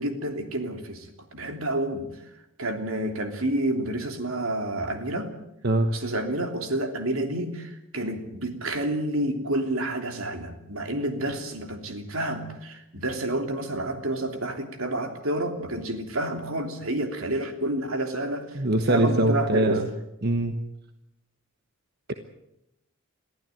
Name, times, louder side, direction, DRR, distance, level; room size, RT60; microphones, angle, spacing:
voice 1, 0.0-2.1 2.6-5.3 5.9-18.4 18.7-19.8, right 1 dB, 70° right, 6 dB, 3.2 m, -29 dB
voice 2, 5.6-5.9 18.5-19.9 20.2-20.6, right 1 dB, 50° right, 7 dB, 1.3 m, -23 dB
23.0 x 15.0 x 9.2 m, 0.85 s
head